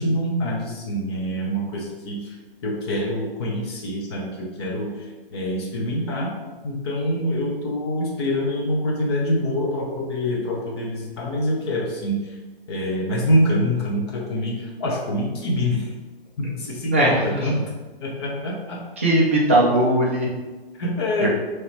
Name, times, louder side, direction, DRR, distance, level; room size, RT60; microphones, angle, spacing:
voice 1, 0.0-2.4 2.6-4.9 5.3-6.4 6.6-12.2 12.7-15.9 16.4-17.6 18.0-18.8 20.3-20.4 20.8-21.3, equal, 25° left, -1 dB, 0.7 m, -25 dB
voice 2, 16.9-17.5 19.0-20.3 21.2-21.3, right 1 dB, 15° right, -4 dB, 0.3 m, -19 dB
4.7 x 3.1 x 3.2 m, 1.2 s
figure-of-eight pair, 135°, 31 cm